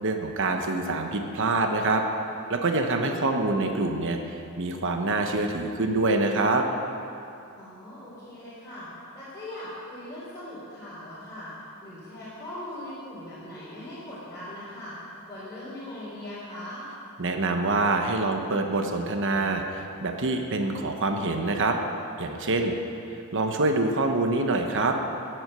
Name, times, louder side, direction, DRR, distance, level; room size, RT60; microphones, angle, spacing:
voice 1, 0.0-2.0 2.5-6.7 17.2-21.8 22.2-22.7 23.3-25.0, right 2 dB, 60° right, 4 dB, 1.0 m, -25 dB
voice 2, 7.6-8.9 9.1-11.5 11.8-14.9 15.3-16.9, left 1 dB, 15° left, -12 dB, 3.9 m, -40 dB
17.0 x 7.9 x 6.8 m, 2.7 s
head